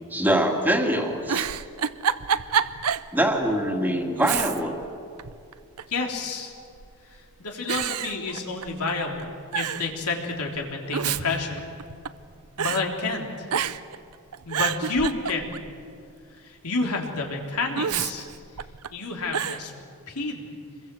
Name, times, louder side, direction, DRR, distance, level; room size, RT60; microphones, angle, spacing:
voice 1, 0.1-1.5 3.1-4.8, right 1 dB, 10° right, 3 dB, 2.1 m, -23 dB
Giggle, 1.2-3.1 3.5-3.6 4.2-4.9 5.2-6.0 6.8-7.2 7.7-8.9 9.2-9.3 9.5-9.9 10.7-12.3 12.6-12.8 13.5-14.0 14.3-15.7 17.8-18.9 19.3-19.6, right 8 dB, 85° right, 0.7 m, -28 dB
voice 2, 5.9-6.5 7.4-9.3 9.5-11.6 12.6-13.5 14.5-15.6 16.4-18.3 18.9-19.7 20.1-20.5, left 3 dB, 85° left, 1 dB, 3.6 m, -29 dB
27.0 x 22.0 x 7.8 m, 2.4 s
head